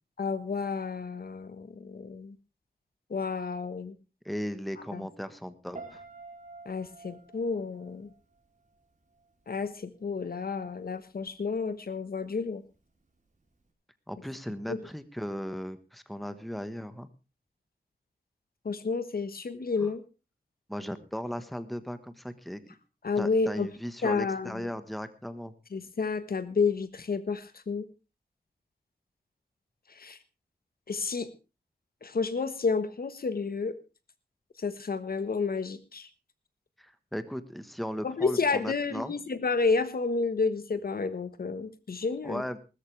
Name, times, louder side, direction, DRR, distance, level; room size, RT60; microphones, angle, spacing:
voice 1, 0.2-2.3 3.1-3.9 4.9-5.1 6.6-8.1 9.5-12.6 14.7-14.8 18.6-20.0 23.0-23.7 24.0-24.7 25.7-27.8 29.9-30.2 30.9-31.3 32.0-33.8 34.6-36.1 38.0-42.4, left 4 dB, 65° left, 13 dB, 1.4 m, -30 dB
voice 2, 4.2-6.0 14.1-17.1 19.8-19.9 20.7-22.6 23.2-25.5 36.8-39.1 42.2-42.6, equal, ahead, 12 dB, 1.3 m, -37 dB
Piano, 5.7-8.8 9.1-9.6, right 3 dB, 50° right, 4.8 m, -48 dB
20.0 x 13.5 x 3.3 m, 0.30 s
wide cardioid pair, 110°, 16 cm